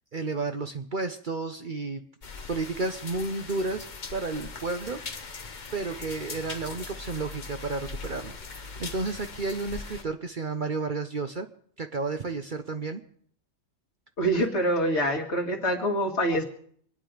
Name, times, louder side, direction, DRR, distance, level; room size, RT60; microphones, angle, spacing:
voice 1, 0.1-2.0 2.5-3.9 4.1-5.0 5.7-11.5 11.8-13.0 14.4-14.5, right 3 dB, 45° right, 7 dB, 0.9 m, -32 dB
sound 1, 2.2-10.0, left 4 dB, 40° left, 1.0 m, -40 dB
voice 2, 14.2-16.4, right 1 dB, 55° left, 3 dB, 2.3 m, -25 dB
25.5 x 9.8 x 5.0 m, 0.62 s
omnidirectional pair, 1.4 m